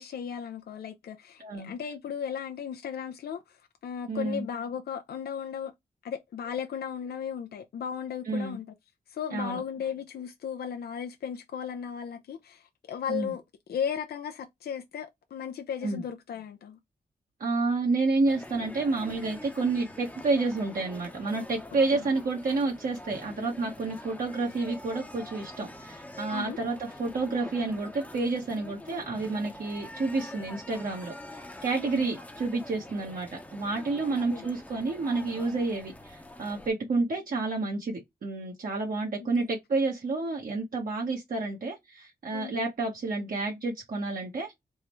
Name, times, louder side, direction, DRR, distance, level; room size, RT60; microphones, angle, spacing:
voice 1, 0.0-3.6 3.8-5.7 6.0-8.7 9.1-13.4 13.7-16.8 21.9-22.0 26.3-26.6 31.8-32.1 34.1-34.5 39.2-39.5 42.3-42.5, left 7 dB, 75° left, 0.4 m, -36 dB
voice 2, 1.4-1.7 4.1-4.5 8.3-8.6 9.3-9.6 13.1-13.3 15.8-16.0 17.4-44.5, right 3 dB, 60° right, 1.0 m, -30 dB
sound 1, 18.3-36.7, left 1 dB, 10° left, 0.7 m, -45 dB
3.5 x 2.1 x 3.0 m
cardioid pair, 65°, 16 cm